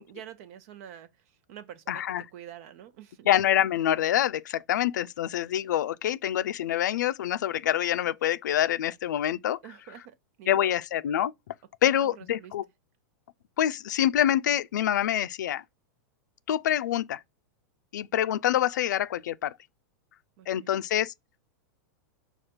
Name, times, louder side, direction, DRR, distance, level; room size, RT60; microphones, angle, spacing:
voice 1, 0.0-2.0 2.3-3.3 9.6-10.8 11.9-12.5 20.4-20.8, right 10 dB, 55° right, 0.7 m, -47 dB
voice 2, 1.9-2.2 3.3-9.6 10.5-11.3 11.8-12.6 13.6-15.6 16.5-17.2 17.9-19.5 20.5-21.1, left 11 dB, 85° left, 0.4 m, -26 dB
5.0 x 2.4 x 4.3 m
supercardioid pair, 140°, 10 cm